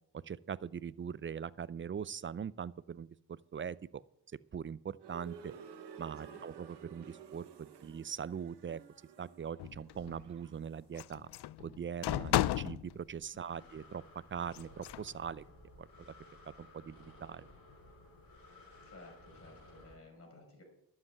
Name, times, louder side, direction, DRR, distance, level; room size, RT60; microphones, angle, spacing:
voice 1, 0.2-4.0 4.5-5.5 6.0-8.8 9.2-11.3 11.6-14.0 14.3-15.4 15.8-16.1 16.6-17.5, right 7 dB, 30° right, 19 dB, 0.5 m, -41 dB
sound 1, 5.0-10.9, right 7 dB, 85° right, 1.3 m, -53 dB
sound 2, 9.6-10.2 11.0-12.9 14.5-15.1, left 14 dB, 75° left, 0.5 m, -34 dB
Breathing, 12.8-19.9, left 2 dB, 55° left, 4.7 m, -57 dB
voice 2, 13.3-13.7 18.8-20.6, left 2 dB, 35° left, 2 dB, 5.7 m, -56 dB
11.5 x 7.7 x 9.1 m, 0.81 s
cardioid pair, 70°, 40 cm